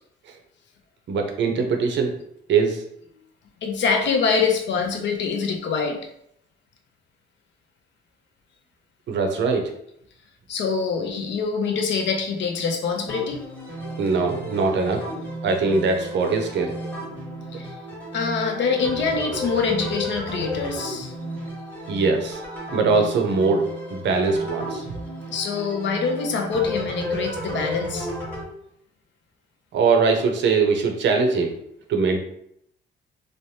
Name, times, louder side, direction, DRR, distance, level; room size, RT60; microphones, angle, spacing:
voice 1, 1.1-2.2 2.5-2.8 9.1-9.8 14.0-15.1 15.4-16.8 21.9-22.4 22.7-24.8 29.7-31.6 31.9-32.2, right 4 dB, 65° right, 4 dB, 0.6 m, -22 dB
voice 2, 3.6-6.0 10.5-13.4 17.5-17.8 18.1-21.1 25.3-28.1, left 5 dB, 65° left, 3 dB, 0.6 m, -25 dB
sound 1, 13.1-28.4, equal, 10° left, 1.1 m, -33 dB
3.2 x 2.1 x 2.7 m, 0.72 s
cardioid pair, 90°, 20 cm